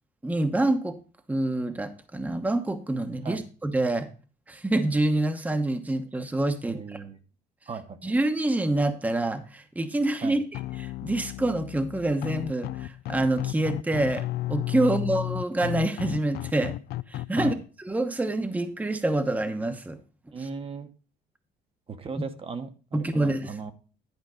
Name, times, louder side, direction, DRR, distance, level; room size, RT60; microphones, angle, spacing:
voice 1, 0.2-1.0 1.3-4.1 4.5-7.0 8.0-10.4 10.8-14.2 14.5-16.7 17.1-17.6 17.8-20.0 20.4-20.5 22.9-23.6, right 2 dB, 10° right, 7 dB, 1.0 m, -26 dB
voice 2, 6.6-7.2 7.7-8.1 10.2-10.4 14.8-14.9 17.4-17.6 20.3-20.9 21.9-23.7, right 5 dB, 35° right, 8 dB, 1.1 m, -37 dB
sound 1, 10.5-17.5, left 16 dB, 70° left, 0.4 m, -33 dB
11.0 x 5.1 x 5.0 m, 0.36 s
cardioid pair, 110°, 17 cm